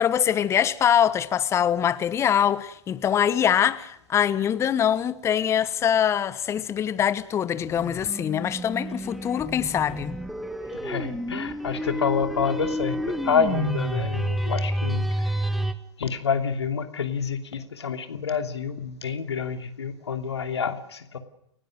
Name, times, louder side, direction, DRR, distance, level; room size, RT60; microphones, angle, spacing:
voice 1, 0.0-10.2, left 9 dB, 20° left, 1.2 m, -23 dB
sound 1, 7.7-15.7, equal, ahead, 1.3 m, -30 dB
voice 2, 10.8-15.4 16.0-21.2, left 6 dB, 65° left, 2.9 m, -28 dB
30.0 x 16.0 x 6.4 m
figure-of-eight pair, 110°, 15 cm